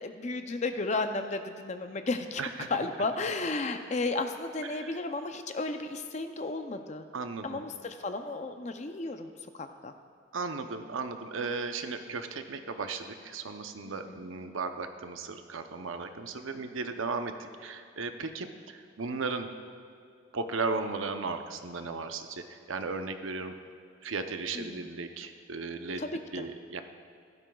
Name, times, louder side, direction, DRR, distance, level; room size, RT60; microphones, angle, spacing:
voice 1, 0.0-2.4 2.7-7.0 7.4-9.9 13.8-14.3 24.5-24.8 26.0-26.5, left 3 dB, 35° left, 7 dB, 0.5 m, -34 dB
voice 2, 7.1-7.6 10.3-19.5 20.3-23.5 24.0-26.0 26.3-26.8, right 4 dB, 85° right, 7 dB, 0.7 m, -36 dB
16.0 x 12.5 x 2.3 m, 2.3 s
head